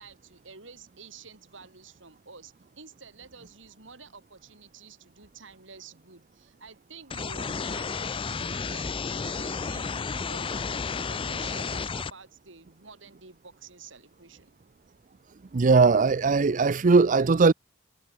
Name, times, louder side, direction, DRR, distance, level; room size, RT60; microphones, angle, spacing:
voice 1, 0.0-10.6 11.1-14.5, right 4 dB, 90° right, 4.9 m, -49 dB
sound 1, 7.1-12.1, left 5 dB, 30° left, 0.5 m, -32 dB
voice 2, 15.5-17.5, right 4 dB, 45° right, 0.5 m, -19 dB
head